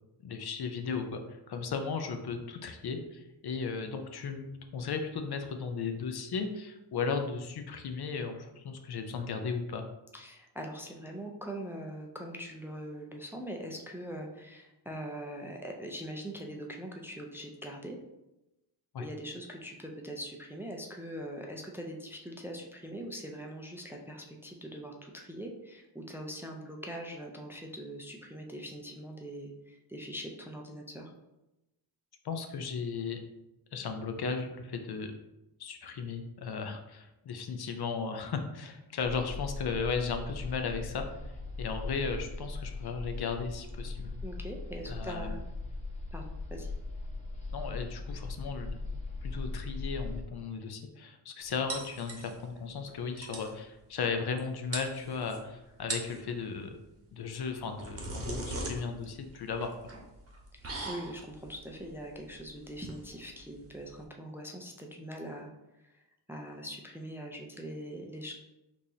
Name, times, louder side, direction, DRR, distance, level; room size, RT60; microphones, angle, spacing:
voice 1, 0.2-9.8 18.9-19.0 32.2-33.2 33.7-35.1 35.6-44.2 44.9-45.4 47.5-48.8 49.2-56.8 57.1-59.7, left 5 dB, 60° left, 6 dB, 0.5 m, -36 dB
voice 2, 10.1-18.0 19.0-31.1 44.2-45.4 46.1-46.2 46.5-46.7 60.6-65.5 65.8-66.0 66.3-68.3, equal, 5° right, 1 dB, 0.4 m, -42 dB
sound 1, 39.0-50.2, left 3 dB, 15° left, 1.0 m, -39 dB
sound 2, 51.7-52.6 52.9-53.0 53.2-53.5 54.4-54.5 54.7-55.4 55.8-56.2 57.4-64.0, right 2 dB, 35° right, 0.9 m, -40 dB
4.6 x 2.6 x 2.7 m, 0.95 s
cardioid pair, 85°, 43 cm